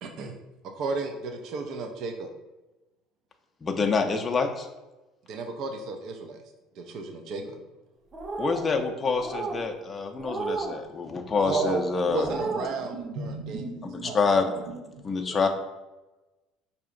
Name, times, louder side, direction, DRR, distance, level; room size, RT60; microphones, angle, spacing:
voice 1, 0.0-0.4 0.8-2.3 5.3-6.4 6.8-7.6 11.4-13.6 14.0-14.2, right 4 dB, 60° right, 4 dB, 0.4 m, -33 dB
voice 2, 3.6-4.7 8.4-12.3 14.1-14.5 15.0-15.5, left 4 dB, 25° left, 3 dB, 0.4 m, -26 dB
sound 1, 8.1-8.7 9.2-9.6 10.2-10.7 11.3-11.7 12.2-12.7, right 3 dB, 25° right, 0.8 m, -33 dB
voice 3, 12.8-14.2 14.5-14.6 14.9-15.5, right 2 dB, 80° right, -1 dB, 0.9 m, -39 dB
4.8 x 2.7 x 2.5 m, 1.1 s
supercardioid pair, 100°, 0 cm